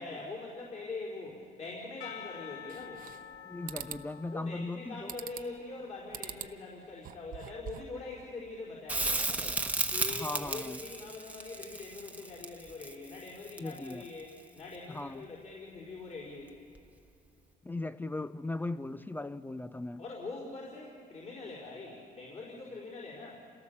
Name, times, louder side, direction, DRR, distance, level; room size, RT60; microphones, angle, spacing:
voice 1, 0.0-3.1 4.3-9.6 9.9-16.5 20.0-23.4, left 3 dB, 40° left, 5.0 m, -43 dB
Percussion / Church bell, 2.0-7.0, left 10 dB, 80° left, 1.0 m, -50 dB
sound 1, 2.7-3.4 3.7-4.0 5.1-5.6 6.1-6.5 6.9-8.0, right 10 dB, 55° right, 1.0 m, -43 dB
voice 2, 3.4-5.1 10.1-10.8 13.6-14.0 14.9-15.3 17.6-20.0, left 2 dB, 10° left, 0.4 m, -38 dB
Crackle, 8.9-14.0 16.8-16.9, right 2 dB, 10° right, 1.2 m, -34 dB
28.0 x 18.0 x 7.2 m
cardioid pair, 110°, 17 cm